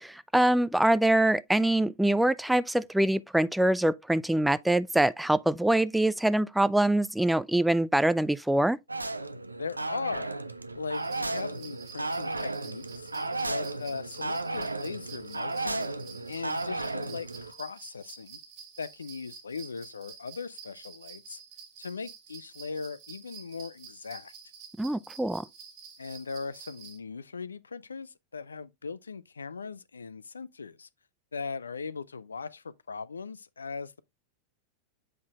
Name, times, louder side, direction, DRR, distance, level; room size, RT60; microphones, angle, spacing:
voice 1, 0.0-8.8 24.8-25.4, right 1 dB, 5° right, 0.3 m, -24 dB
sound 1, 8.9-17.5, right 2 dB, 80° right, 0.5 m, -34 dB
voice 2, 9.6-10.4 10.7-13.1 13.4-15.9 16.3-18.4 18.8-21.4 21.8-24.3 26.0-30.9 31.3-33.9, left 5 dB, 75° left, 0.4 m, -39 dB
sound 2, 10.9-27.0, right 6 dB, 45° right, 1.6 m, -49 dB
7.8 x 5.5 x 2.4 m
figure-of-eight pair, 90°, 0 cm